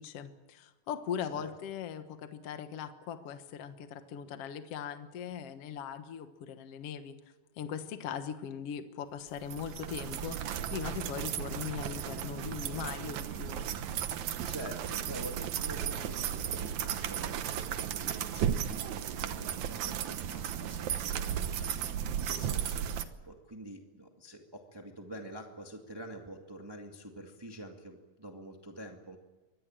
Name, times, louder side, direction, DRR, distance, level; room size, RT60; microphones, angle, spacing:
voice 1, 0.0-7.2 7.6-13.7, left 8 dB, 65° left, 8 dB, 1.5 m, -40 dB
sound 1, 9.4-23.0, right 9 dB, 65° right, 2.0 m, -35 dB
voice 2, 14.4-29.2, right 1 dB, 15° right, 2 dB, 0.8 m, -47 dB
24.5 x 19.0 x 8.9 m, 1.2 s
omnidirectional pair, 4.5 m